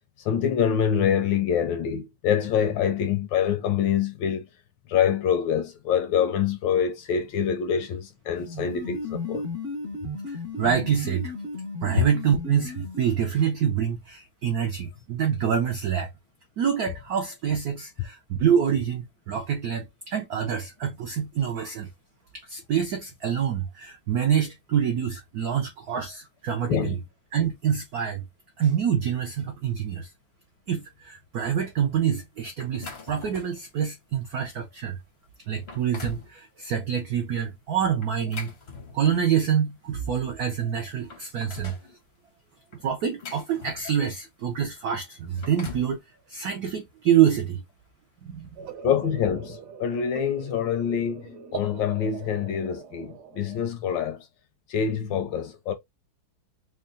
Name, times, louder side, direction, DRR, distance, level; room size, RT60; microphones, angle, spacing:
voice 1, 0.2-4.4 4.9-9.4 12.0-12.1 26.7-27.0 48.8-54.3 54.7-55.7, left 8 dB, 75° left, 1.1 m, -25 dB
sound 1, 8.4-13.3, left 2 dB, 40° right, 0.9 m, -34 dB
voice 2, 10.3-11.3 11.8-16.1 16.6-21.9 22.4-27.0 27.3-28.2 28.6-30.1 30.7-35.0 35.5-38.5 38.9-41.8 42.8-46.0 46.3-47.6 48.2-48.5, right 8 dB, 80° right, 0.8 m, -26 dB
sound 2, 32.6-33.6 34.2-34.4 35.0-35.1 35.5-36.3 38.0-39.3 40.4-40.5 40.8-41.9 42.7-44.2 45.1-46.0, left 5 dB, 55° left, 0.6 m, -41 dB
sound 3, 48.6-53.6, right 8 dB, 60° right, 1.1 m, -42 dB
3.7 x 2.2 x 3.7 m
omnidirectional pair, 2.3 m